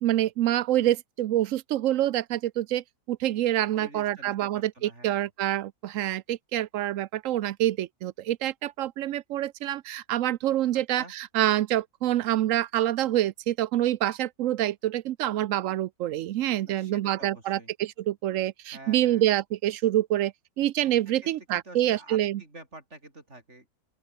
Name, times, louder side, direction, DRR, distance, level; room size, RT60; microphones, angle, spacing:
voice 1, 0.0-22.4, right 13 dB, 65° right, 0.9 m, -26 dB
voice 2, 3.7-5.3 10.7-11.1 16.6-17.7 18.7-19.2 21.2-23.7, right 2 dB, 45° right, 5.9 m, -47 dB
open air
omnidirectional pair, 1.6 m